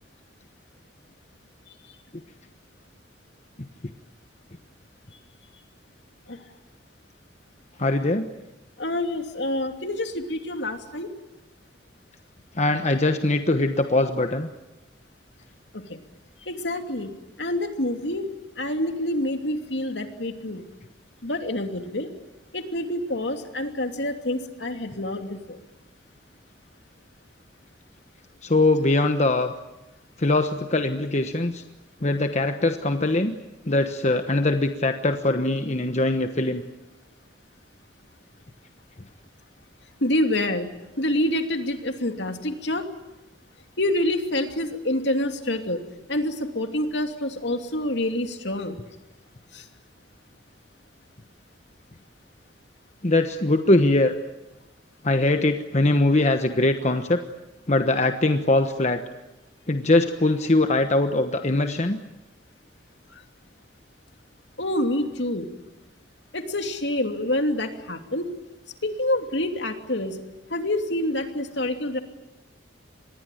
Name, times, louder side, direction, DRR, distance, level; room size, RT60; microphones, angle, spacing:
voice 1, 7.8-8.3 12.5-14.5 28.4-29.5 30.2-31.6 32.0-33.4 33.7-36.6 53.0-54.1 55.0-57.2 57.7-59.0 59.7-62.0, left 2 dB, 40° left, 7 dB, 1.2 m, -22 dB
voice 2, 8.8-11.1 15.7-15.8 16.4-17.1 17.4-18.3 18.6-20.6 21.2-22.1 22.5-25.6 40.0-40.7 41.0-42.8 43.8-45.8 46.1-48.8 49.5-49.6 64.6-65.5 66.3-68.3 68.8-70.2 70.5-72.0, left 1 dB, 70° left, 5 dB, 2.8 m, -27 dB
26.0 x 21.0 x 9.2 m, 1.0 s
head